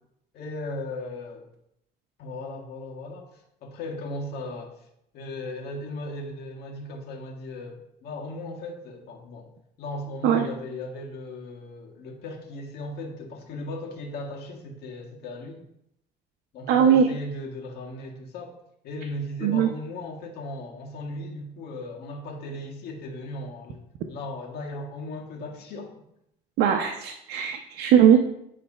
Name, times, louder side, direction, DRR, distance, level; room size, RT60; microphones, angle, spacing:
voice 1, 0.3-1.4 2.2-4.8 5.1-9.5 9.8-15.6 16.5-18.6 18.8-23.8 24.1-26.0, left 2 dB, 75° left, 0 dB, 1.6 m, -37 dB
voice 2, 16.7-17.1 19.4-19.7 26.6-28.2, right 8 dB, 80° right, 3 dB, 0.7 m, -19 dB
10.0 x 3.4 x 5.4 m, 0.78 s
cardioid pair, 110°, 17 cm